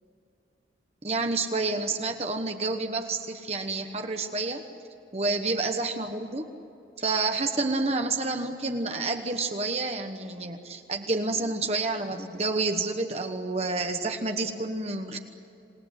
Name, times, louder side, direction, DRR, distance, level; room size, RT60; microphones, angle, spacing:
voice 1, 1.0-4.6 5.1-6.5 7.0-15.2, right 3 dB, 35° right, 5 dB, 1.1 m, -29 dB
27.5 x 19.0 x 9.9 m, 2.8 s
head